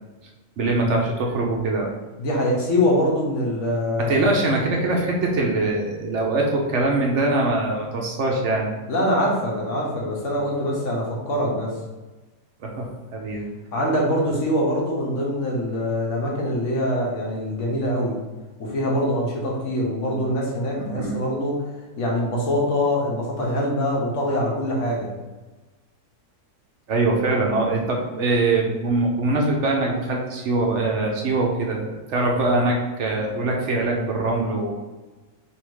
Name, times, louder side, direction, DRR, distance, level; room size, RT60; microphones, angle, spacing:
voice 1, 0.6-1.9 4.1-8.7 12.6-13.4 20.8-21.2 26.9-34.7, right 2 dB, 60° right, 0 dB, 0.8 m, -23 dB
voice 2, 2.2-4.4 8.9-11.7 13.7-18.2 18.6-25.1, left 1 dB, 55° left, -3 dB, 1.2 m, -24 dB
3.5 x 2.6 x 4.6 m, 1.2 s
omnidirectional pair, 1.7 m